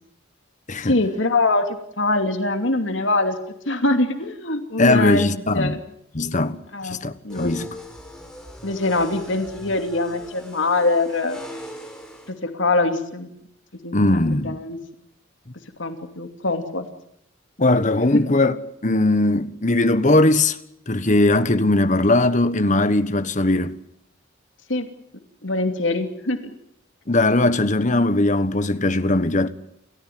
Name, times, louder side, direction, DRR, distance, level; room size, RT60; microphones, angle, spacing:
voice 1, 0.8-3.4 3.7-5.8 6.7-7.5 8.6-11.4 12.3-13.3 13.8-14.0 14.4-14.8 15.8-16.8 18.1-18.2 24.7-24.9 25.4-26.4, left 2 dB, 65° left, 2.8 m, -23 dB
voice 2, 4.8-5.8 6.1-6.6 6.8-7.7 13.9-14.6 17.6-18.6 18.8-20.6 20.9-23.8 27.1-29.5, left 2 dB, 40° left, 1.4 m, -19 dB
sound 1, 7.3-12.3, equal, 5° left, 4.8 m, -40 dB
29.5 x 14.5 x 9.5 m
head